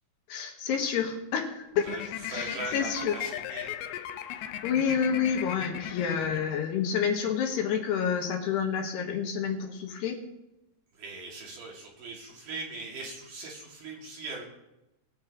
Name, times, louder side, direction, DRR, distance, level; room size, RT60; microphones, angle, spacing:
voice 1, 0.3-1.8 2.3-3.1 4.6-10.2, left 7 dB, 75° left, 3 dB, 3.2 m, -29 dB
sound 1, 1.7-7.0, left 11 dB, 90° left, 2.2 m, -38 dB
voice 2, 1.8-3.8 10.9-14.4, right 2 dB, 50° right, -2 dB, 3.6 m, -40 dB
21.0 x 7.6 x 3.6 m, 0.93 s
omnidirectional pair, 5.1 m